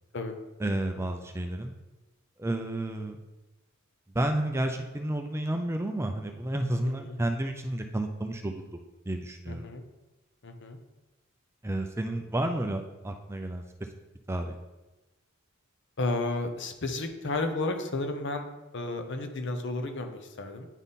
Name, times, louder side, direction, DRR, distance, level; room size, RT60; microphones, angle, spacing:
voice 1, 0.6-1.7 2.4-3.2 4.1-9.7 11.6-13.6 14.3-14.5, right 1 dB, 10° right, 5 dB, 0.4 m, -31 dB
voice 2, 6.8-7.2 9.5-9.8 10.4-10.8 16.0-18.5 18.7-20.7, left 2 dB, 60° left, 6 dB, 0.8 m, -32 dB
9.1 x 3.6 x 4.1 m, 1.1 s
head